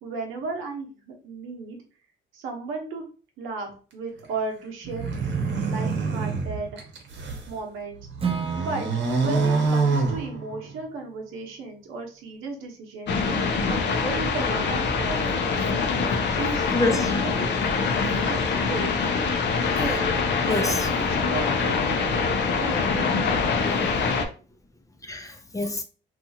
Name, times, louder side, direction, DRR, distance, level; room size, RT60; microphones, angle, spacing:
voice 1, 0.0-1.8 2.3-3.1 3.4-5.0 5.6-6.8 7.3-8.0 8.6-13.1 13.7-15.8 16.2-17.5 18.1-19.0 19.6-22.3 22.6-23.7, right 3 dB, 90° right, 0.9 m, -35 dB
sound 1, 4.8-7.5 8.0-10.8, right 4 dB, 65° right, 1.0 m, -26 dB
Acoustic guitar / Strum, 8.2-12.2, right 6 dB, 30° right, 0.6 m, -36 dB
sound 2, 13.1-24.3, left 4 dB, 60° left, 0.6 m, -24 dB
voice 2, 16.7-17.2 19.5-20.1 20.5-20.9 23.6-24.0 25.0-25.8, left 2 dB, 15° left, 0.5 m, -28 dB
2.8 x 2.4 x 2.7 m
cardioid pair, 90°, 20 cm